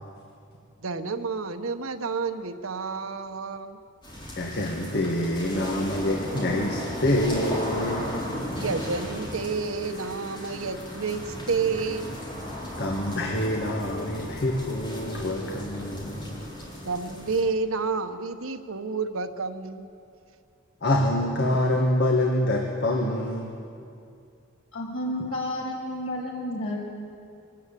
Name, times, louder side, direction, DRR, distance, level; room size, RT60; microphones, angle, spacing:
voice 1, 0.8-3.8 8.5-12.2 16.8-19.9, right 4 dB, 85° right, 8 dB, 1.1 m, -30 dB
sound 1, 4.0-17.4, equal, 25° left, 4.0 m, -36 dB
voice 2, 4.4-8.2 12.8-16.4 20.8-23.5 25.2-25.3, left 1 dB, 55° left, 0 dB, 1.8 m, -26 dB
voice 3, 24.7-26.8, left 1 dB, 85° left, -4 dB, 7.0 m, -31 dB
24.5 x 13.5 x 9.1 m, 2.5 s
head